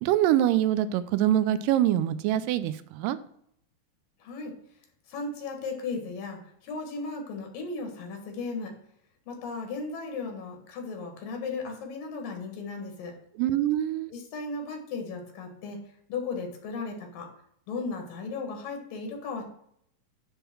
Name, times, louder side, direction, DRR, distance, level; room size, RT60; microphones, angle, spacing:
voice 1, 0.0-3.2 13.4-14.1, right 12 dB, 85° right, 14 dB, 2.2 m, -24 dB
voice 2, 4.2-4.5 5.1-8.7 9.3-13.1 14.1-15.8 16.1-17.3 17.7-19.4, left 4 dB, 85° left, 3 dB, 3.3 m, -36 dB
10.0 x 3.7 x 6.0 m, 0.69 s
omnidirectional pair, 3.8 m